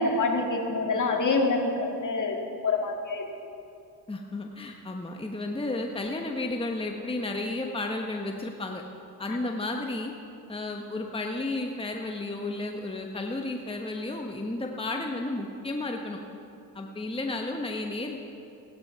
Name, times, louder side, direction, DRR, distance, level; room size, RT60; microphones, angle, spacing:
voice 1, 0.0-2.4 2.6-3.3 9.3-9.4, left 3 dB, 45° left, 2 dB, 2.2 m, -26 dB
voice 2, 4.1-8.8 9.2-10.1 10.5-16.2 16.7-18.2, left 2 dB, 15° left, 2 dB, 1.2 m, -32 dB
16.0 x 9.6 x 5.8 m, 2.7 s
supercardioid pair, 60°, 42 cm